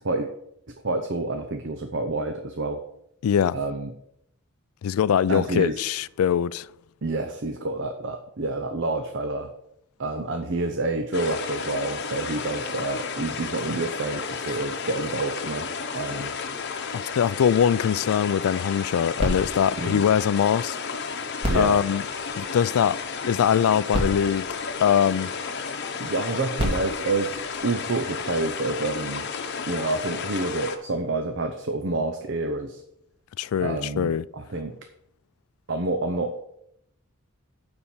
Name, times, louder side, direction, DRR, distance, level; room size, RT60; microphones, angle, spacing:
voice 1, 0.8-2.8 3.5-3.9 5.3-5.8 7.0-9.5 10.0-15.7 15.9-16.3 19.8-20.0 21.5-21.8 26.0-27.4 27.6-29.3 29.7-32.8 33.6-34.8 35.7-36.4, right 2 dB, 55° right, 0.7 m, -28 dB
voice 2, 3.2-3.6 4.8-6.7 14.5-14.6 16.9-20.8 21.5-22.0 22.4-23.0 23.2-25.3 33.4-34.2, left 8 dB, 80° left, 0.3 m, -22 dB
sound 1, 11.1-30.8, left 5 dB, 50° left, 0.9 m, -33 dB
sound 2, 19.2-20.8 21.4-23.0 23.6-23.7 23.9-25.5 26.3-28.1 28.9-29.0, equal, 25° right, 2.4 m, -32 dB
9.7 x 4.4 x 7.1 m
head